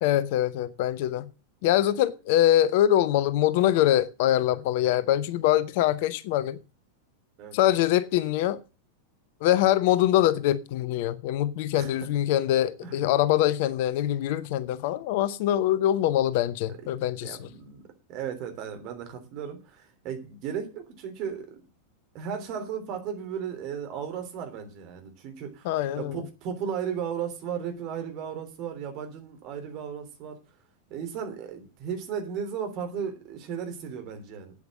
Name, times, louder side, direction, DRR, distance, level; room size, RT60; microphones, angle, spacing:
voice 1, 0.0-1.2 1.6-6.6 7.5-8.6 9.4-17.5 25.6-26.2, left 12 dB, 50° left, 0.7 m, -24 dB
voice 2, 12.8-13.1 17.2-17.8 18.1-21.6 22.1-30.4 30.9-34.5, right 7 dB, 40° right, 3.4 m, -35 dB
8.8 x 8.1 x 7.8 m
figure-of-eight pair, 90°, 0 cm